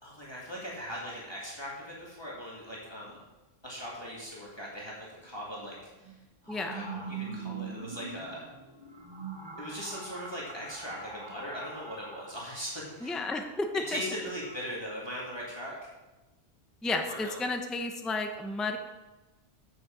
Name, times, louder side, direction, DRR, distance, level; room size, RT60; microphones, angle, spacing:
voice 1, 0.0-3.2 3.6-6.1 6.4-8.4 9.6-13.2 13.9-15.7 17.1-17.4, equal, 25° left, -5 dB, 1.8 m, -40 dB
sound 1, 5.2-5.3 6.0-14.6, right 5 dB, 25° right, 1.0 m, -43 dB
voice 2, 13.0-14.0 16.8-18.8, left 3 dB, ahead, 5 dB, 0.5 m, -32 dB
8.5 x 6.8 x 5.0 m, 1.1 s
omnidirectional pair, 1.1 m